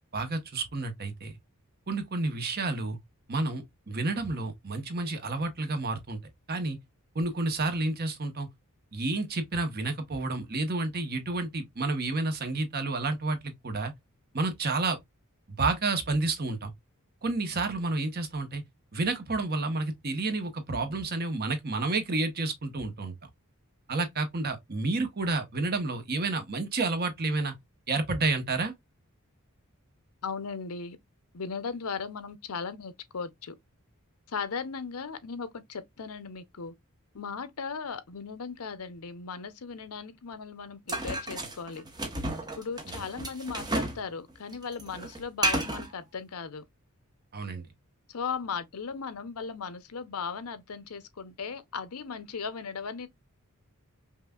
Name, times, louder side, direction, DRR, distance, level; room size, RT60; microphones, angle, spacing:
voice 1, 0.1-1.4 1.9-3.0 3.3-6.2 6.5-6.8 7.1-8.5 8.9-13.9 14.3-15.0 15.6-16.7 17.2-18.6 18.9-23.1 23.9-27.5 27.9-28.7 47.3-47.6, right 3 dB, 45° right, 1.0 m, -30 dB
voice 2, 30.2-31.0 31.3-33.5 34.3-36.7 37.1-41.9 42.6-46.7 48.1-53.1, left 5 dB, 75° left, 0.7 m, -37 dB
sound 1, 40.9-44.0 44.3-45.9, right 1 dB, 20° right, 1.0 m, -32 dB
5.6 x 2.4 x 2.3 m
head